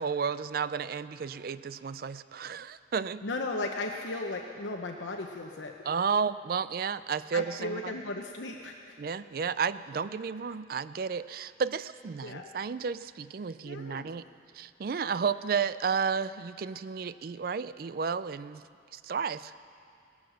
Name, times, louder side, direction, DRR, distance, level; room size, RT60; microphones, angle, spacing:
voice 1, 0.0-3.2 5.8-7.9 9.0-14.2 14.5-18.6 18.9-19.5, right 6 dB, 50° right, 15 dB, 0.4 m, -32 dB
voice 2, 3.2-5.7 7.3-9.0 12.2-12.5 13.7-14.1, left 2 dB, 85° left, 2 dB, 0.9 m, -36 dB
17.5 x 11.5 x 6.4 m, 2.4 s
head